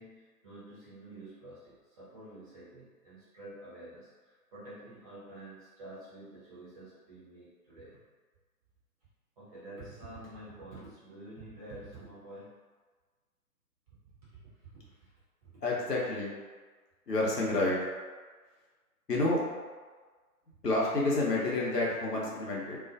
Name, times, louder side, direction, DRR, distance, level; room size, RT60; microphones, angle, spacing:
voice 1, 0.0-8.0 9.4-12.6 13.9-14.2 14.4-15.1 15.4-15.6, right 1 dB, 25° right, -10 dB, 0.9 m, -49 dB
voice 2, 15.6-16.3 17.1-17.8 19.1-19.4 20.6-22.8, left 2 dB, 90° left, -5 dB, 0.9 m, -29 dB
2.4 x 2.3 x 2.5 m, 1.4 s
figure-of-eight pair, 140°, 47 cm